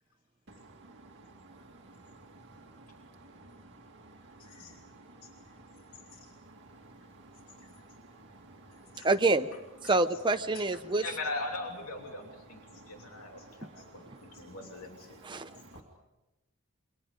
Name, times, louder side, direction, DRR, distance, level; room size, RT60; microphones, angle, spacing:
voice 1, 1.5-2.0 2.7-3.1 3.4-3.8 4.1-4.2 5.1-5.2 6.5-6.8 7.6-7.7 8.2-8.6 12.9-13.1 14.4-14.5 15.5-15.6, right 2 dB, 55° right, -1 dB, 2.2 m, -54 dB
voice 2, 4.4-4.9 5.2-5.3 6.1-6.3 8.9-9.1 9.8-9.9 10.5-15.2 15.7-15.8, left 2 dB, 85° left, 1 dB, 2.9 m, -41 dB
voice 3, 9.0-9.5 9.8-11.0 15.2-15.5, right 3 dB, 20° right, 7 dB, 0.8 m, -26 dB
28.5 x 24.5 x 5.1 m, 1.0 s
head